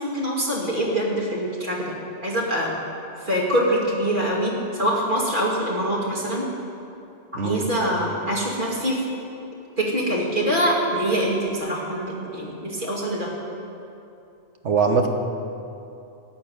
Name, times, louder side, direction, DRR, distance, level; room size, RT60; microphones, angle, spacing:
voice 1, 0.0-1.9 2.2-2.7 3.2-6.5 7.3-9.0 9.8-13.3, equal, 45° right, -4 dB, 2.5 m, -24 dB
voice 2, 14.6-15.1, right 5 dB, 75° right, 5 dB, 1.4 m, -21 dB
14.0 x 6.8 x 9.6 m, 2.7 s
omnidirectional pair, 1.2 m